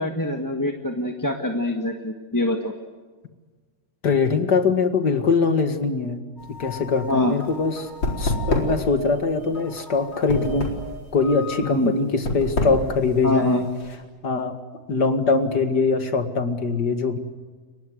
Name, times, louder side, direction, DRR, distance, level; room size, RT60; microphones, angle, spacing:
voice 1, 0.0-2.7 7.1-7.4 11.6-11.9 13.2-13.6, left 1 dB, 10° left, 3 dB, 1.5 m, -24 dB
voice 2, 4.0-6.2 6.6-7.9 8.2-10.7 11.1-13.7 14.2-14.5 14.9-17.2, left 4 dB, 65° left, 8 dB, 2.5 m, -22 dB
sound 1, 6.4-14.0, left 1 dB, 85° left, 4.9 m, -28 dB
sound 2, 6.4-11.7, equal, 35° left, 4.4 m, -39 dB
30.0 x 23.0 x 7.9 m, 1.4 s
omnidirectional pair, 2.0 m